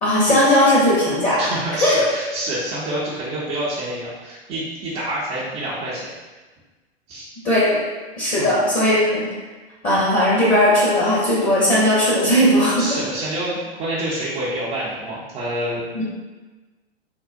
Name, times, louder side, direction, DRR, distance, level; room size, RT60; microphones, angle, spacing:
voice 1, 0.0-1.4 1.8-2.1 7.4-7.8 8.2-9.3 9.8-12.9 15.9-16.0, left 1 dB, 25° left, -7 dB, 0.7 m, -17 dB
voice 2, 1.4-6.1 7.1-7.3 8.4-8.5 12.8-16.0, right 1 dB, 20° right, -9 dB, 0.4 m, -27 dB
3.6 x 2.0 x 2.5 m, 1.3 s
hypercardioid pair, 110°, 33 cm